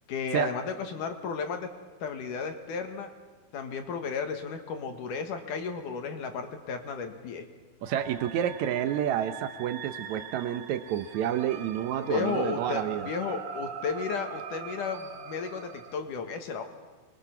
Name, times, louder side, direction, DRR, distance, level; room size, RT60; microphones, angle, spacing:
voice 1, 0.1-1.7 2.0-3.1 3.5-7.5 12.0-16.6, left 5 dB, 60° left, 6 dB, 2.9 m, -33 dB
sound 1, 7.8-16.0, right 6 dB, 60° right, 1.4 m, -42 dB
voice 2, 7.8-13.1, right 10 dB, 85° right, 9 dB, 1.6 m, -29 dB
27.5 x 22.5 x 5.9 m, 1.3 s
omnidirectional pair, 4.5 m